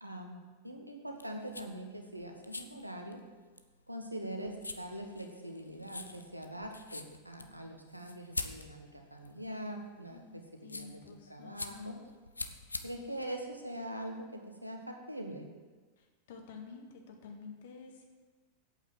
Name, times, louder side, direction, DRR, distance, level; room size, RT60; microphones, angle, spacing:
voice 1, 0.0-3.2 3.9-12.0 12.8-15.5, right 1 dB, 85° right, 3 dB, 1.4 m, -43 dB
sound 1, 1.1-14.2, left 2 dB, 80° left, 0.6 m, -46 dB
voice 2, 10.1-12.0 16.0-18.1, left 5 dB, 55° left, 3 dB, 1.8 m, -50 dB
8.4 x 8.1 x 7.6 m, 1.4 s
figure-of-eight pair, 90°, 0 cm